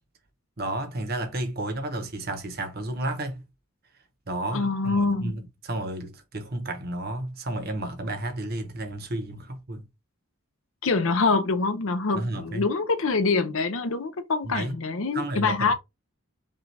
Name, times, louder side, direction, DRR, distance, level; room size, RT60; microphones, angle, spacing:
voice 1, 0.6-3.4 4.3-9.9 12.1-12.7 14.4-14.7 15.1-15.7, right 1 dB, 45° right, 0.9 m, -32 dB
voice 2, 4.5-5.3 10.8-15.7, left 4 dB, 65° left, 0.7 m, -25 dB
5.5 x 2.4 x 3.3 m
head